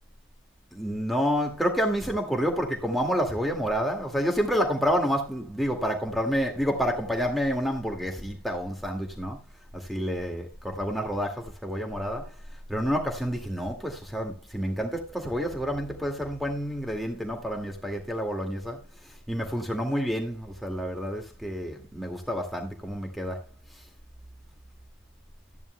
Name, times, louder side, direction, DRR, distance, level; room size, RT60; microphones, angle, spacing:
voice 1, 0.7-9.4 9.7-12.3 12.7-18.8 19.3-23.4, equal, ahead, 2.0 m, -29 dB
13.0 x 10.5 x 2.2 m
head